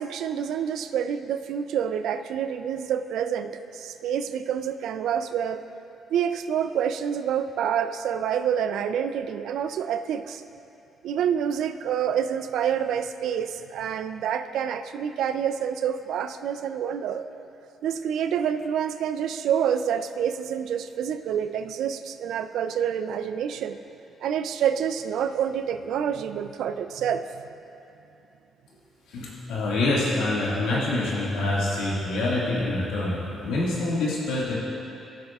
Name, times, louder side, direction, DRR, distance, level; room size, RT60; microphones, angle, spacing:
voice 1, 0.0-5.6 6.1-10.4 11.0-17.3 17.8-23.8 24.2-27.4, right 8 dB, 80° right, 10 dB, 0.4 m, -27 dB
voice 2, 29.1-34.5, left 2 dB, 90° left, -6 dB, 1.9 m, -26 dB
15.5 x 6.7 x 2.4 m, 2.8 s
cardioid pair, 90°, 0 cm